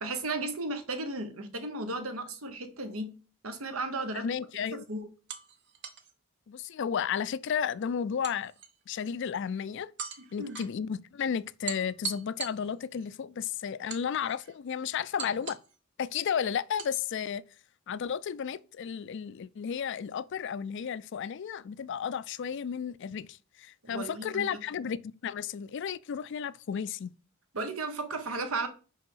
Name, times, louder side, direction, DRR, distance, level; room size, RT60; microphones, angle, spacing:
voice 1, 0.0-3.1 3.4-4.3 4.7-5.1 10.4-10.6 23.8-24.5 27.5-28.7, right 2 dB, 90° right, 1.2 m, -34 dB
sound 1, 4.0-4.2 5.3-6.1 8.2-9.0 10.0-10.7 11.7-13.1 13.9-14.6 15.2-15.8 16.8-16.9, right 7 dB, 55° right, 0.9 m, -41 dB
voice 2, 4.1-4.8 6.5-8.5 8.9-9.9 10.3-15.6 16.0-17.4 17.9-27.1, left 7 dB, 60° left, 0.4 m, -33 dB
5.3 x 4.9 x 5.5 m
head